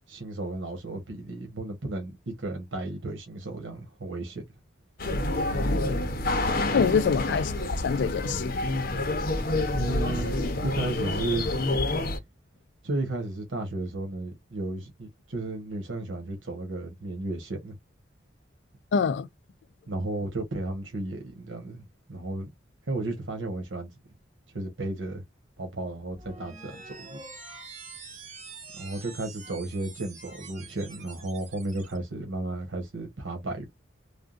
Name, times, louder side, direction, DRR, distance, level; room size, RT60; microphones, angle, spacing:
voice 1, 0.1-4.4 9.7-10.4 10.6-11.5 12.8-17.8 19.9-22.5 22.9-23.9 24.5-25.2 25.6-27.2 28.8-33.7, right 2 dB, 85° right, 1.2 m, -33 dB
sound 1, 5.0-12.2, left 2 dB, 50° left, 0.8 m, -28 dB
voice 2, 5.6-6.1 6.7-8.5 18.9-19.3, left 6 dB, 65° left, 0.3 m, -26 dB
sound 2, 26.1-32.0, right 4 dB, 40° right, 1.5 m, -46 dB
3.5 x 2.3 x 2.4 m
head